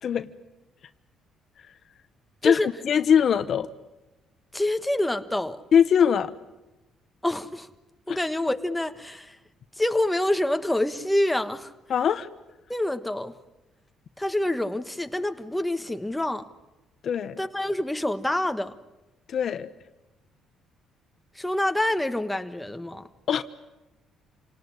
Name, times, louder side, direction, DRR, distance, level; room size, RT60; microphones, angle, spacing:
voice 1, 2.4-3.7 5.7-6.3 8.1-8.2 11.9-12.3 17.0-17.4 19.3-19.7 23.3-23.4, left 8 dB, 55° left, 1.0 m, -22 dB
voice 2, 4.5-5.6 7.2-7.7 8.1-9.4 9.8-11.7 12.7-13.3 14.2-16.5 17.4-18.7 21.3-23.1, left 1 dB, 5° left, 1.4 m, -26 dB
27.0 x 19.0 x 9.9 m
cardioid pair, 95°, 0 cm